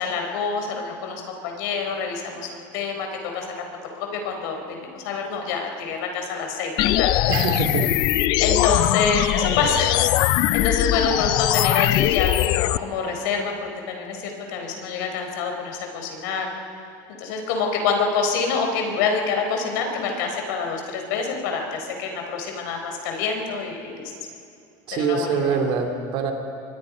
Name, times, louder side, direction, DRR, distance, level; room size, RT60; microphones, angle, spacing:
voice 1, 0.0-3.1 3.3-3.5 3.9-7.4 8.4-10.1 10.5-16.5 17.2-24.1 24.9-25.6, left 5 dB, 70° left, 3 dB, 4.3 m, -26 dB
sound 1, 6.8-12.8, left 15 dB, 45° left, 0.5 m, -21 dB
voice 2, 7.3-8.0 24.9-26.3, right 5 dB, 45° right, 5 dB, 2.8 m, -24 dB
28.0 x 23.5 x 5.2 m, 2.5 s
cardioid pair, 160°, 11 cm